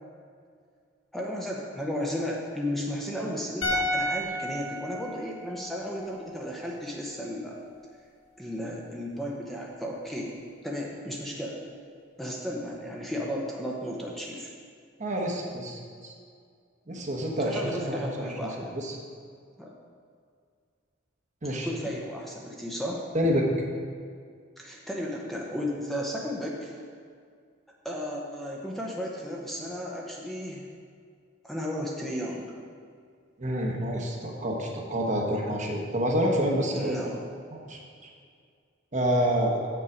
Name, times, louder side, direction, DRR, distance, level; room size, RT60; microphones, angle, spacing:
voice 1, 1.1-7.6 8.4-10.3 10.6-11.6 12.2-14.5 17.5-18.7 19.6-19.7 21.5-23.0 24.6-26.8 27.8-30.6 31.4-32.5 36.7-37.2, equal, ahead, -2 dB, 0.8 m, -34 dB
sound 1, 3.6-6.8 7.1-7.2, equal, 70° left, 1.6 m, -32 dB
voice 2, 15.0-16.1 16.9-18.9 21.4-21.7 23.1-23.5 33.4-37.0 37.7-38.1 38.9-39.6, equal, 40° right, 0 dB, 1.1 m, -28 dB
7.4 x 6.9 x 5.0 m, 2.2 s
head